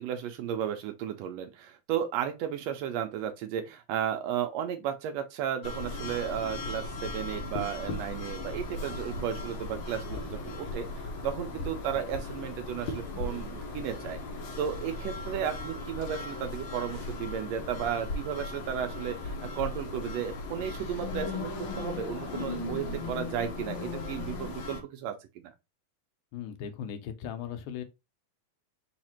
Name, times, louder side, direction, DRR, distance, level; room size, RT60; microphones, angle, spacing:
voice 1, 0.0-14.2 14.6-25.5, right 9 dB, 80° right, 1.6 m, -34 dB
sound 1, 5.6-24.8, left 2 dB, 75° left, 1.2 m, -37 dB
voice 2, 26.3-27.8, left 8 dB, 90° left, 2.2 m, -38 dB
4.9 x 2.4 x 4.2 m
omnidirectional pair, 3.5 m